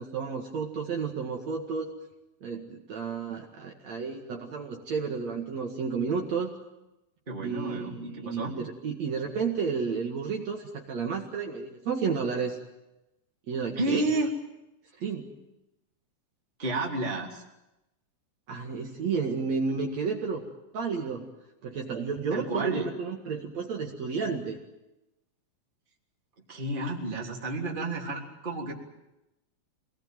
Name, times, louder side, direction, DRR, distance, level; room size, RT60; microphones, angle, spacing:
voice 1, 0.0-1.9 2.4-6.5 7.4-12.6 13.5-14.1 15.0-15.3 18.5-20.4 20.7-21.3 21.6-24.6, right 5 dB, 55° right, 1 dB, 3.0 m, -32 dB
voice 2, 7.3-8.5 13.8-14.3 16.6-17.4 22.3-22.9 26.5-28.7, right 2 dB, 15° right, 0 dB, 3.1 m, -31 dB
25.5 x 19.5 x 9.2 m, 0.93 s
omnidirectional pair, 4.0 m